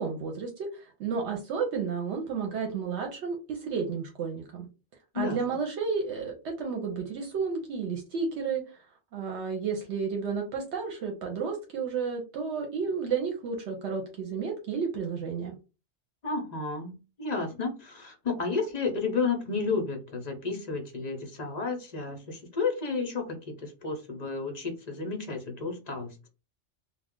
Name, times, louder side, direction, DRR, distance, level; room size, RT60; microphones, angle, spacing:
voice 1, 0.0-4.7 5.1-8.8 9.1-15.5, right 5 dB, 75° right, 2 dB, 0.9 m, -32 dB
voice 2, 16.2-26.1, left 4 dB, 45° left, 2 dB, 0.7 m, -32 dB
2.3 x 2.2 x 3.5 m, 0.31 s
omnidirectional pair, 1.2 m